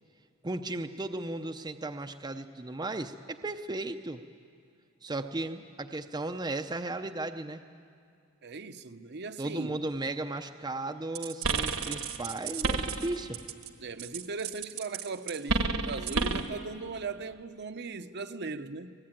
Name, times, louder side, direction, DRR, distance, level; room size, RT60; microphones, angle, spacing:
voice 1, 0.4-4.2 5.0-7.6 9.4-13.4, right 2 dB, 20° right, 0.6 m, -35 dB
voice 2, 8.4-9.8 13.8-18.9, right 4 dB, 55° right, 0.8 m, -38 dB
sound 1, 11.1-13.7 14.0-16.5, right 4 dB, 75° right, 1.4 m, -31 dB
24.0 x 19.0 x 9.1 m
head